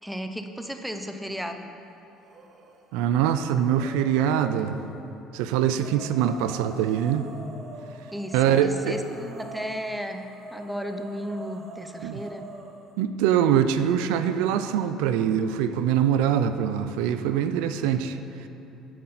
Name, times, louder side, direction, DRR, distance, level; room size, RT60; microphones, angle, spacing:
voice 1, 0.0-1.7 8.1-12.5, equal, ahead, 6 dB, 0.6 m, -34 dB
sound 1, 2.2-2.8 3.2-5.0 5.7-12.9, right 3 dB, 45° right, 1.0 m, -44 dB
voice 2, 2.9-4.8 5.3-7.3 8.3-9.0 12.0-12.2 13.0-18.2, right 9 dB, 85° right, 10 dB, 0.3 m, -23 dB
8.4 x 7.6 x 4.1 m, 3.0 s
supercardioid pair, 90°, 0 cm